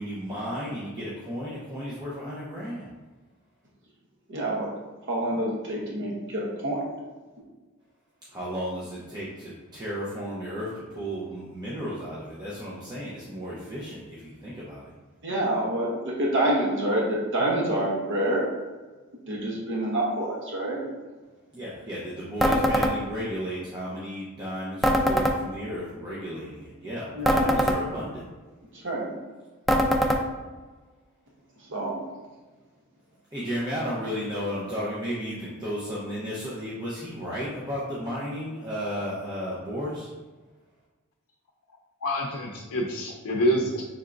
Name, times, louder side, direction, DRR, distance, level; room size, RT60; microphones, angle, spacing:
voice 1, 0.0-2.9 8.3-14.9 21.5-28.2 33.3-40.1, equal, 20° right, -8 dB, 0.7 m, -34 dB
voice 2, 4.3-4.7 5.1-6.8 15.2-18.5 19.3-20.8 27.1-27.6 28.8-29.1 31.7-32.0, right 1 dB, 60° right, -3 dB, 0.9 m, -27 dB
sound 1, 22.4-22.9 24.8-25.4 27.2-27.8 29.7-30.2, equal, ahead, 0.3 m, -22 dB
voice 3, 42.0-43.8, equal, 80° left, 0 dB, 0.5 m, -26 dB
5.6 x 3.5 x 2.5 m, 1.3 s
head